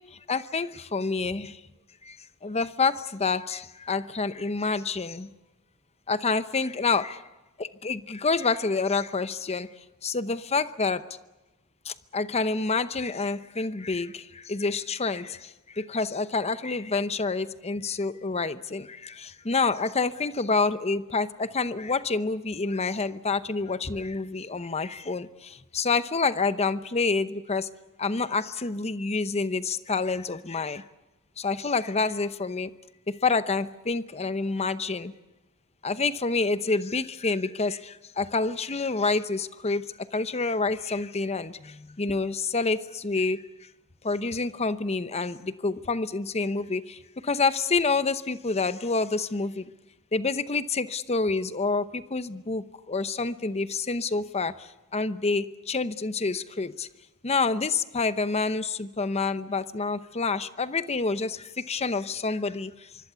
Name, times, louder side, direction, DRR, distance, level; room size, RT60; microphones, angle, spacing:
voice 1, 0.3-1.6 2.0-2.2 2.4-5.3 6.1-7.2 7.6-9.7 10.0-11.0 11.8-27.7 28.0-30.8 31.4-32.7 33.1-35.1 35.8-43.4 44.0-49.6 50.1-56.9 57.2-62.9, left 4 dB, 30° left, 13 dB, 0.8 m, -28 dB
25.0 x 24.0 x 6.9 m, 1.1 s
head